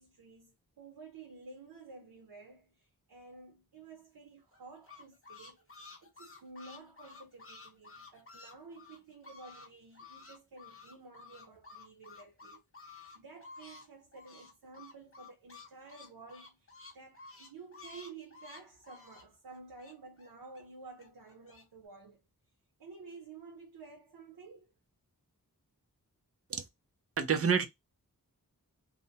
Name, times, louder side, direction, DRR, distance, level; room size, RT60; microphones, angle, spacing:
voice 1, 0.0-22.2 22.8-24.7, right 4 dB, 90° right, 0.7 m, -52 dB
sound 1, 4.5-9.7 9.9-13.9 14.1-20.6 21.0-21.6, left 4 dB, 35° left, 0.7 m, -52 dB
voice 2, 27.2-27.7, right 6 dB, 40° right, 0.5 m, -28 dB
2.5 x 2.1 x 2.7 m
wide cardioid pair, 65°, 36 cm